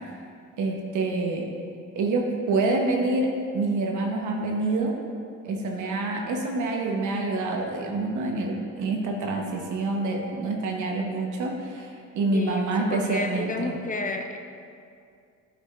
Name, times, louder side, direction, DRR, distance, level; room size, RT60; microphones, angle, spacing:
voice 1, 0.6-1.5 1.9-4.9 5.4-13.8, right 2 dB, 75° right, 1 dB, 1.0 m, -27 dB
voice 2, 12.3-14.4, left 2 dB, 25° left, 5 dB, 0.5 m, -31 dB
10.0 x 4.9 x 2.5 m, 2.4 s
cardioid pair, 90°, 30 cm